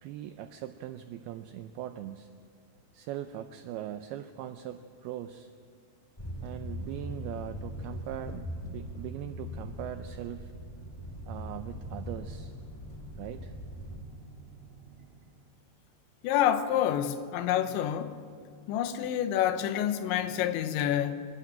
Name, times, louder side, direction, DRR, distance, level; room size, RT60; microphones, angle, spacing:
voice 1, 0.0-2.3 2.9-5.5 6.4-10.5 11.3-12.5 13.2-13.5, right 11 dB, 90° right, 2.2 m, -40 dB
sound 1, 6.2-14.0, left 1 dB, 25° left, 0.6 m, -41 dB
sound 2, 10.6-15.7, right 6 dB, 70° right, 4.7 m, -53 dB
voice 2, 16.2-18.2 18.7-21.2, left 10 dB, 85° left, 3.2 m, -28 dB
24.5 x 13.5 x 8.8 m
omnidirectional pair, 5.3 m